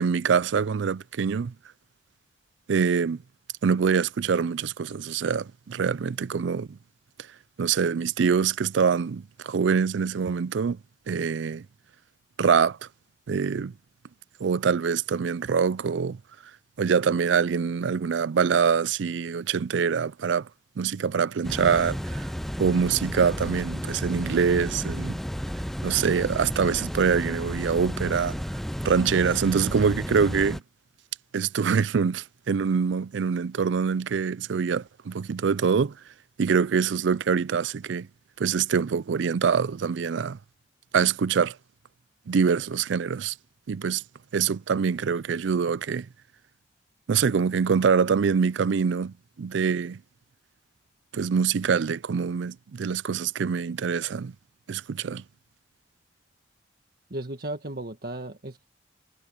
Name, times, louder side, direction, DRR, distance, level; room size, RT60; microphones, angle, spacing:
voice 1, 0.0-1.5 2.7-3.2 3.6-6.8 7.6-10.8 11.1-11.7 12.4-12.8 13.3-13.7 14.4-16.2 16.8-20.5 20.8-22.3 22.6-25.2 25.8-28.4 28.8-30.6 31.3-36.0 36.4-38.1 38.4-40.4 40.9-41.6 42.3-43.3 43.7-44.0 44.3-46.1 47.1-50.0 51.1-54.3 54.7-55.2, right 6 dB, 75° right, 0.4 m, -24 dB
sound 1, 21.4-30.6, equal, ahead, 0.4 m, -32 dB
voice 2, 57.1-58.7, right 1 dB, 50° right, 1.7 m, -35 dB
head